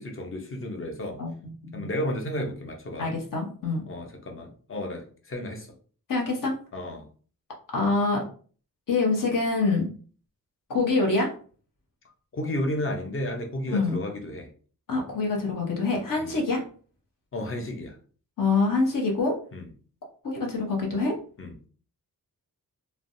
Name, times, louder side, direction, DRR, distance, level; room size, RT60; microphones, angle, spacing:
voice 1, 0.0-1.2 1.7-3.2 3.9-5.7 6.7-7.0 12.3-14.5 16.2-16.3 17.3-18.0 19.5-19.7 21.4-21.5, left 1 dB, 35° left, 0.7 m, -32 dB
voice 2, 1.2-1.9 3.0-3.8 6.1-6.5 7.7-8.2 8.9-9.9 10.7-11.3 13.7-14.0 14.9-16.6 18.4-19.4 20.2-21.1, left 3 dB, 60° left, 1.0 m, -25 dB
3.2 x 2.1 x 2.6 m
wide cardioid pair, 95°, 36 cm